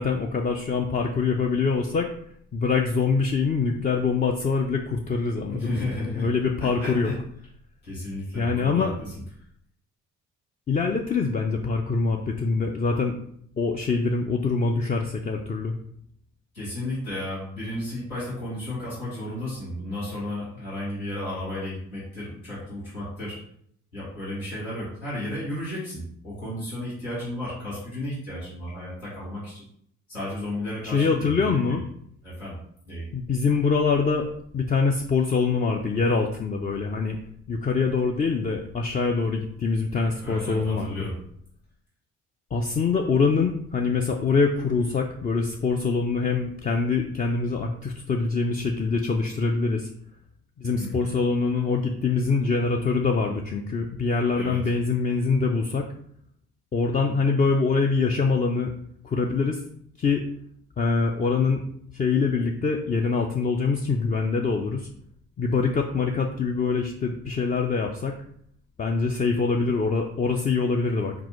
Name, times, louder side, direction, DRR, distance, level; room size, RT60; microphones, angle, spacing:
voice 1, 0.0-2.1 2.5-7.1 8.3-8.9 10.7-13.1 13.6-15.8 30.8-31.8 33.1-34.3 34.5-37.2 37.5-41.1 42.5-49.9 50.6-55.9 56.7-58.7 59.0-59.6 60.0-60.2 60.8-61.6 61.9-64.9 65.4-68.1 68.8-71.1, left 4 dB, 20° left, 2 dB, 0.4 m, -24 dB
voice 2, 5.5-6.3 6.6-7.2 7.8-9.1 16.5-23.4 23.9-29.6 30.1-31.8 32.2-32.6 32.9-33.0 40.2-41.1 50.6-51.0 54.3-54.6, left 1 dB, 90° left, -10 dB, 1.9 m, -33 dB
4.3 x 3.9 x 3.0 m, 0.67 s
figure-of-eight pair, 45°, 41 cm